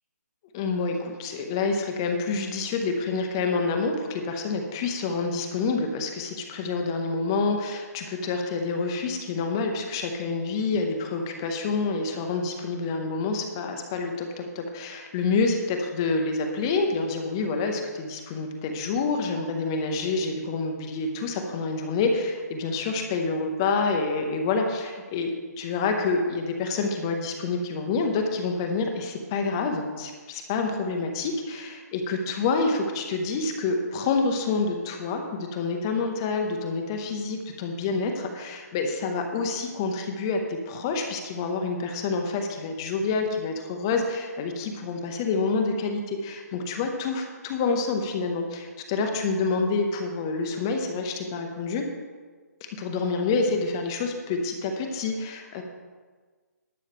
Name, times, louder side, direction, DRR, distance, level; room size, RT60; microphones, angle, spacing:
voice 1, 0.5-25.3 25.6-51.8 52.8-55.6, left 4 dB, 15° left, 4 dB, 0.6 m, -27 dB
11.5 x 6.4 x 6.7 m, 1.4 s
hypercardioid pair, 180°, 9 cm